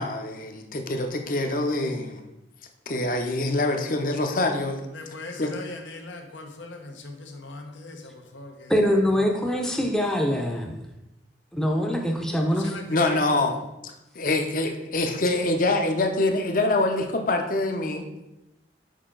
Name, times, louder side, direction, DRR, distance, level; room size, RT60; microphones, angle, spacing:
voice 1, 0.0-2.2 2.9-4.9 5.3-5.5 12.9-18.1, left 2 dB, 45° left, 0.7 m, -25 dB
voice 2, 4.9-8.7 12.5-13.2, left 2 dB, 90° left, 0.9 m, -40 dB
voice 3, 8.7-10.8 11.5-12.8, equal, 5° left, 0.6 m, -24 dB
6.6 x 4.9 x 3.8 m
head